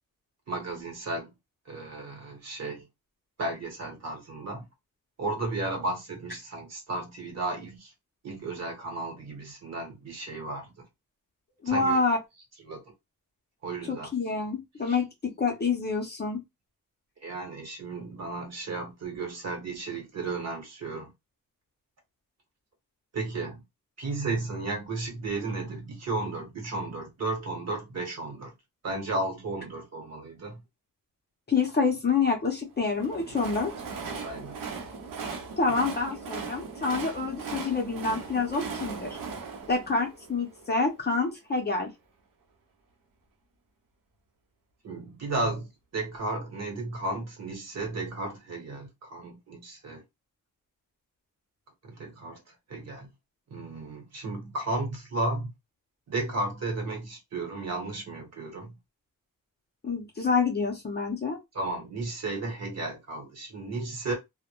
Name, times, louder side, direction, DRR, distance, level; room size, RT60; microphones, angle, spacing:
voice 1, 0.5-1.3 1.7-2.8 3.4-4.6 5.2-7.9 8.2-10.7 11.6-12.0 12.6-12.8 13.6-14.1 14.8-15.0 17.2-21.1 23.1-23.6 24.0-28.5 28.8-30.6 34.2-34.6 44.8-45.7 45.9-50.0 51.8-52.4 52.7-53.1 53.5-55.5 56.1-58.7 61.5-64.1, right 2 dB, 50° right, 1.0 m, -34 dB
voice 2, 11.6-12.2 13.9-16.4 31.5-33.7 35.6-39.2 39.7-41.9 59.8-61.4, left 4 dB, 30° left, 0.6 m, -27 dB
Train, 32.8-41.0, right 5 dB, 70° right, 0.7 m, -38 dB
2.1 x 2.1 x 2.9 m
wide cardioid pair, 165°, 34 cm